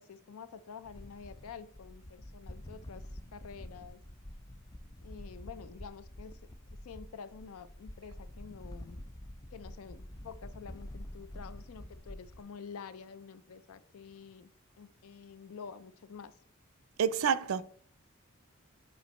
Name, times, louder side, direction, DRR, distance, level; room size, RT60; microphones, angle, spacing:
voice 1, 0.0-3.0 3.3-4.0 5.0-6.4 6.8-9.0 9.5-14.5 14.8-16.3, left 6 dB, 80° left, 0.4 m, -48 dB
sound 1, 0.8-12.4, left 1 dB, 15° left, 0.4 m, -48 dB
voice 2, 17.0-17.6, right 7 dB, 70° right, 0.4 m, -28 dB
9.3 x 4.4 x 3.1 m
head